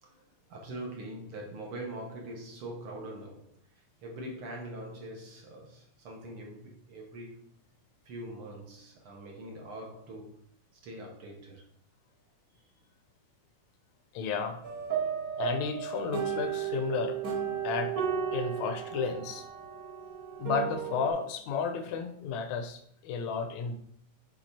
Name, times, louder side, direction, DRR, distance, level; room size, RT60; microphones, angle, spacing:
voice 1, 0.0-7.4 8.0-10.4 10.8-11.7 12.6-12.7, right 1 dB, 60° right, -1 dB, 1.5 m, -43 dB
voice 2, 14.1-14.6 15.4-17.2 17.6-17.9 18.3-19.5 20.4-23.7, left 5 dB, 75° left, 7 dB, 1.8 m, -32 dB
sound 1, 14.6-21.1, right 8 dB, 45° right, 1.3 m, -34 dB
8.1 x 3.6 x 4.1 m, 0.66 s
omnidirectional pair, 3.5 m